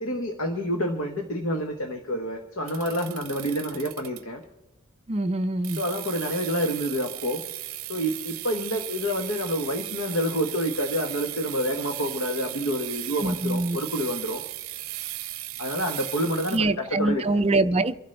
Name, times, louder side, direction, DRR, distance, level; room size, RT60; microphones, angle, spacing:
voice 1, 0.0-4.4 5.7-7.4 7.9-14.4 15.6-17.2, equal, 65° left, 3 dB, 1.1 m, -28 dB
sound 1, 2.7-4.4 5.6-16.6, right 15 dB, 65° right, 0.7 m, -36 dB
voice 2, 5.1-5.8 13.2-13.8 16.5-18.0, right 2 dB, 25° right, 8 dB, 0.5 m, -24 dB
27.5 x 11.5 x 3.3 m, 1.0 s
head